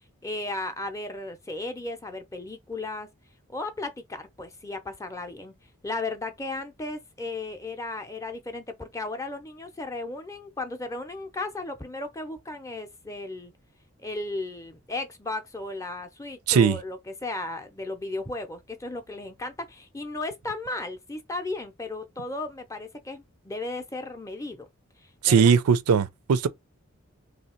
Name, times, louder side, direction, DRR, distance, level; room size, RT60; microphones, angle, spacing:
voice 1, 0.2-3.1 3.5-5.5 5.8-13.5 14.0-24.7 25.0-25.5, left 2 dB, 15° left, 0.5 m, -35 dB
voice 2, 25.2-26.5, right 6 dB, 90° right, 0.4 m, -19 dB
3.1 x 2.8 x 4.3 m
head